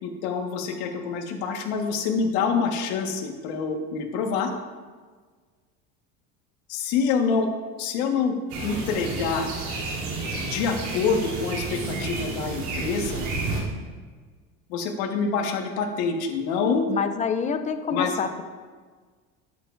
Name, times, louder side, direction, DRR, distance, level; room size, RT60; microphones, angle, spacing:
voice 1, 0.0-4.5 6.7-7.5 7.8-8.4 8.6-9.5 10.4-13.3 14.7-16.8 17.9-18.2, left 5 dB, 75° left, 2 dB, 1.6 m, -26 dB
sound 1, 8.5-13.6, right 3 dB, 65° right, 3.2 m, -31 dB
voice 2, 16.9-18.4, left 6 dB, 25° left, 8 dB, 0.6 m, -27 dB
12.0 x 9.4 x 2.6 m, 1.5 s
cardioid pair, 145°, 32 cm